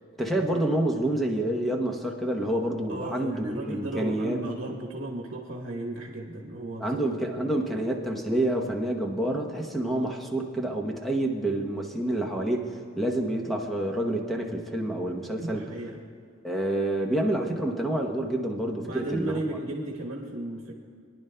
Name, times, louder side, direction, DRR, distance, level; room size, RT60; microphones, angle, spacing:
voice 1, 0.2-4.4 6.8-12.7 13.0-15.6 16.4-19.4, right 1 dB, ahead, 0 dB, 0.8 m, -28 dB
voice 2, 2.9-7.5 15.4-16.0 18.8-20.7, right 1 dB, 65° right, -2 dB, 1.1 m, -35 dB
22.0 x 10.5 x 2.2 m, 2.3 s
head